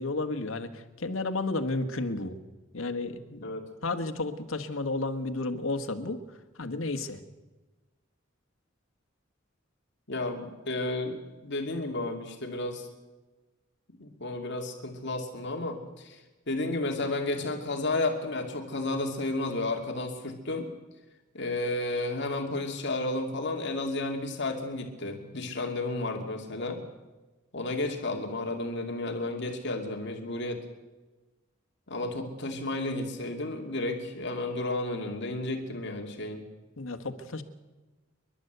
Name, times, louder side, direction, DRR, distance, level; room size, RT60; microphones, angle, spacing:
voice 1, 0.0-2.4 2.7-3.5 3.8-6.2 6.6-7.2 36.8-37.4, left 2 dB, 90° left, 7 dB, 1.6 m, -32 dB
voice 2, 10.1-12.9 14.0-16.2 16.5-20.7 21.3-26.8 27.5-30.6 31.9-36.5, left 2 dB, 60° left, 3 dB, 2.5 m, -32 dB
28.0 x 11.5 x 8.1 m, 1.2 s
head